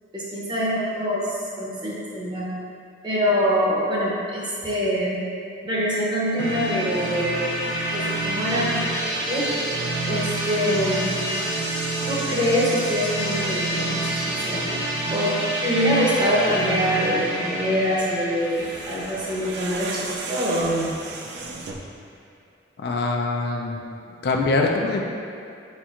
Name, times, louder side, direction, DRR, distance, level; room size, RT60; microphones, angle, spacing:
voice 1, 0.1-2.5 3.0-5.2 5.6-7.4 7.9-8.9 9.3-9.5 10.1-11.1 12.1-14.6 15.1-15.4 15.6-20.9, equal, 25° right, -6 dB, 0.7 m, -24 dB
sound 1, 6.4-20.1, right 1 dB, 85° right, 0.7 m, -27 dB
sound 2, 18.3-22.0, right 3 dB, 60° right, 0.4 m, -35 dB
voice 2, 22.8-23.8 24.2-25.0, left 3 dB, 60° left, 1 dB, 0.3 m, -23 dB
4.3 x 4.2 x 2.4 m, 2.5 s
head